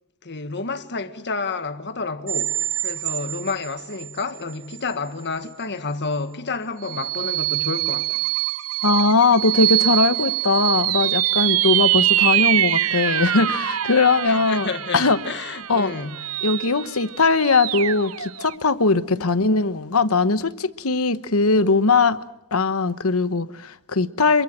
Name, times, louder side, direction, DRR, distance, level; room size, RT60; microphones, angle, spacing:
voice 1, 0.2-8.2 14.2-16.2 19.2-19.3, left 4 dB, 55° left, 1.8 m, -30 dB
sound 1, 2.3-4.2 4.7-4.8 6.8-18.5, right 13 dB, 70° right, 0.9 m, -24 dB
voice 2, 8.8-14.7 14.9-15.2 15.7-15.9 16.4-22.2 22.5-24.4, left 3 dB, 75° left, 1.1 m, -20 dB
27.0 x 23.5 x 7.4 m
head